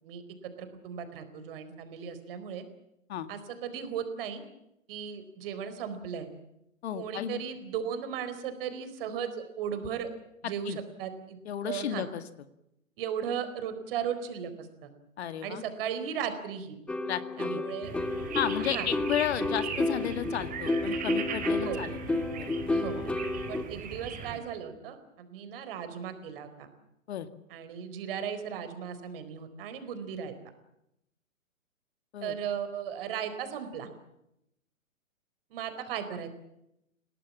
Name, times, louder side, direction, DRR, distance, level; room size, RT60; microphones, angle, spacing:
voice 1, 0.0-2.6 3.3-4.4 4.9-6.3 6.9-10.1 10.4-11.4 11.6-12.1 13.0-14.9 15.4-16.8 17.4-17.9 18.6-18.9 21.6-21.8 22.7-23.0 23.5-26.7 27.5-30.3 32.2-33.9 35.5-36.3, right 8 dB, 40° right, 9 dB, 4.4 m, -36 dB
voice 2, 6.8-7.4 10.7-10.8 11.5-12.2 15.2-15.6 17.1-17.6 18.3-22.6 23.0-23.1 27.1-27.3 32.1-32.3, left 10 dB, 50° left, 12 dB, 2.0 m, -33 dB
sound 1, 16.9-23.6, left 2 dB, 5° left, 1.0 m, -31 dB
sound 2, 17.8-24.4, right 6 dB, 20° right, 4.3 m, -39 dB
28.0 x 18.5 x 7.4 m, 0.82 s
figure-of-eight pair, 125°, 41 cm